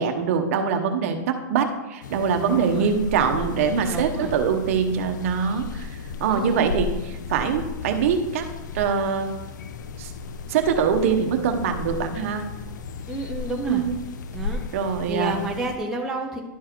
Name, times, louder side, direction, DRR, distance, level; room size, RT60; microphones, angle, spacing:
voice 1, 0.0-8.5 8.7-9.3 10.0-10.1 10.5-12.4 13.7-13.9 14.7-15.4, right 6 dB, 45° right, 6 dB, 1.0 m, -23 dB
sound 1, 2.0-15.8, left 5 dB, 70° left, 0.7 m, -35 dB
voice 2, 2.5-2.9 3.9-4.4 6.3-6.6 13.1-13.8 14.3-14.6 15.1-16.4, right 2 dB, 5° right, -1 dB, 0.5 m, -30 dB
11.0 x 4.6 x 4.5 m, 1.0 s
supercardioid pair, 170°, 10 cm